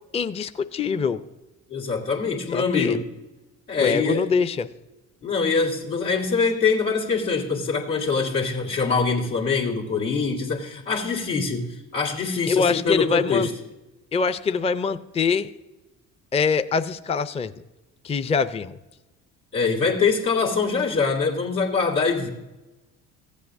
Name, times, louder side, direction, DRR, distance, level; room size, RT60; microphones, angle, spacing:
voice 1, 0.1-1.2 2.5-3.0 3.8-4.7 12.5-13.5 14.1-15.5 16.3-17.5 18.0-18.8, left 5 dB, 15° left, 12 dB, 0.5 m, -24 dB
voice 2, 1.7-3.1 3.7-4.2 5.2-13.5 19.5-22.3, left 4 dB, 90° left, -5 dB, 2.2 m, -24 dB
15.5 x 8.4 x 2.6 m, 1.0 s
hypercardioid pair, 55°, 40 cm